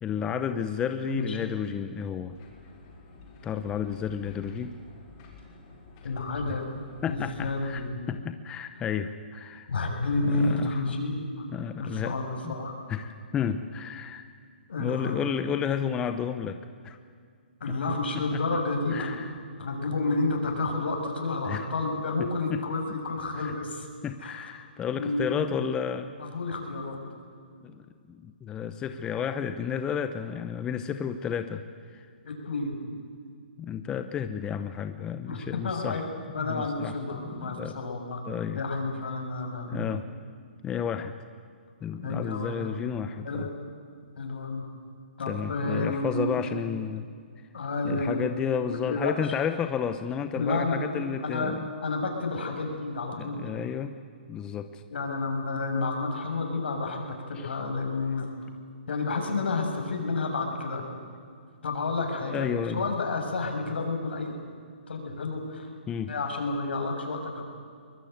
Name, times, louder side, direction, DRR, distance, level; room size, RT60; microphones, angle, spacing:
voice 1, 0.0-2.3 3.4-4.8 7.0-9.7 10.2-11.1 11.5-12.2 12.4-12.6 12.9-14.2 14.8-16.6 16.8-17.0 18.3-18.4 18.9-19.3 21.4-21.7 22.2-22.6 23.4-23.5 24.0-26.2 27.6-31.6 31.9-32.1 33.6-36.0 36.4-37.9 38.3-38.6 39.7-40.1 40.6-41.1 41.8-43.5 45.3-47.1 47.8-51.7 53.2-53.9 54.3-54.8 57.3-57.6 62.2-62.8 65.9-66.1, left 8 dB, 15° left, 9 dB, 0.8 m, -32 dB
voice 2, 1.1-1.4 6.0-6.6 7.1-8.0 9.7-11.5 11.8-12.7 14.7-15.3 17.6-19.1 19.6-23.9 24.2-24.4 24.9-25.5 26.2-27.0 32.2-32.7 35.3-35.4 35.6-36.0 36.3-38.2 38.5-39.8 42.0-42.8 43.2-43.5 44.2-44.6 45.2-46.4 47.5-48.2 48.7-49.1 50.4-50.8 51.2-53.4 54.9-58.3 58.9-60.8 61.6-62.5 62.7-64.3 64.9-65.7 66.1-67.4, left 3 dB, 75° left, 2 dB, 6.7 m, -30 dB
sound 1, 2.3-7.9, left 4 dB, 30° left, 6.2 m, -51 dB
23.0 x 22.0 x 9.2 m, 2.2 s
hypercardioid pair, 155°, 6 cm